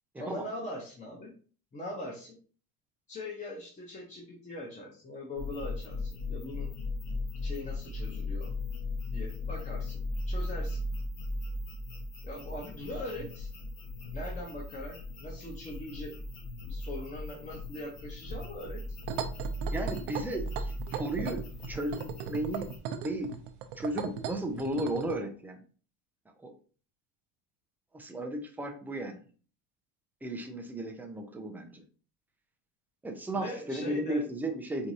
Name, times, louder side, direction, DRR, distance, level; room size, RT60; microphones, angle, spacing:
voice 1, 0.2-1.3 1.7-2.4 3.1-6.7 7.4-8.5 9.0-10.8 12.2-13.5 14.1-16.1 16.7-18.8 33.3-34.2, left 1 dB, 20° left, -3 dB, 0.8 m, -41 dB
sound 1, 5.4-22.8, left 2 dB, 70° left, 1.4 m, -37 dB
sound 2, 19.0-25.2, right 8 dB, 80° right, 0.7 m, -37 dB
voice 2, 19.7-21.4 21.7-22.7 23.0-23.3 23.8-25.6 26.4-26.5 27.9-29.2 30.2-31.8 33.0-34.9, right 1 dB, 5° right, 4 dB, 0.3 m, -34 dB
4.6 x 2.6 x 2.7 m, 0.40 s
cardioid pair, 130°, 40 cm